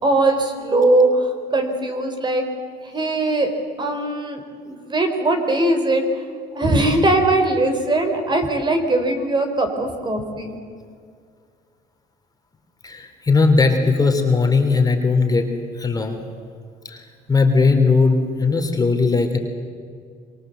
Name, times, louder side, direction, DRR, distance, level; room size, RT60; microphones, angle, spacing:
voice 1, 0.0-2.4 2.8-3.5 3.8-4.4 4.7-6.0 6.5-10.6, right 2 dB, 25° right, 6 dB, 4.0 m, -20 dB
voice 2, 12.8-15.5 15.8-16.2 16.8-19.4, left 4 dB, 20° left, 4 dB, 3.2 m, -18 dB
26.0 x 23.5 x 8.0 m, 2.2 s
cardioid pair, 110°, 17 cm